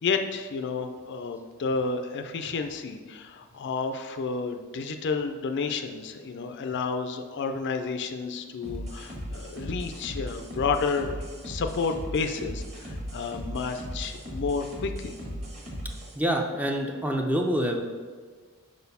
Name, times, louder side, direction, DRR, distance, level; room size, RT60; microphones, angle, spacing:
voice 1, 0.0-15.1, left 4 dB, 50° left, 6 dB, 0.4 m, -31 dB
sound 1, 8.6-16.1, equal, 30° right, 1.4 m, -37 dB
voice 2, 16.1-17.8, equal, 5° right, 2 dB, 0.4 m, -26 dB
4.9 x 4.1 x 5.4 m, 1.5 s
head